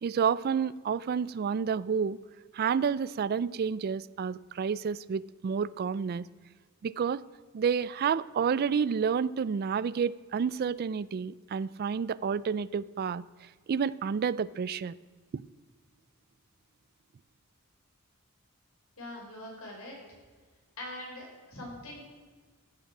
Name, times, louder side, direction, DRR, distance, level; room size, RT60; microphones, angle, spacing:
voice 1, 0.0-2.2 2.5-6.3 6.8-7.2 7.5-13.2 13.7-14.9 15.3-15.4, right 6 dB, 45° right, 20 dB, 0.3 m, -29 dB
voice 2, 19.0-19.9 20.8-22.1, left 1 dB, 85° left, -2 dB, 5.0 m, -42 dB
14.5 x 9.1 x 6.0 m, 1.5 s
head